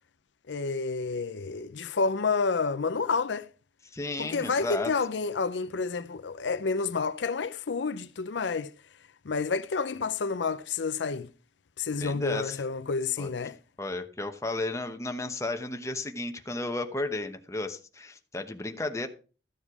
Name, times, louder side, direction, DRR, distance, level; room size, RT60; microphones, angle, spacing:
voice 1, 0.5-3.5 4.2-8.7 9.2-11.3 11.8-13.6, left 4 dB, 80° left, 0.6 m, -29 dB
voice 2, 3.9-4.9 11.9-12.6 13.2-13.3 13.8-19.1, left 2 dB, 15° left, 1.0 m, -33 dB
13.5 x 7.3 x 4.8 m
head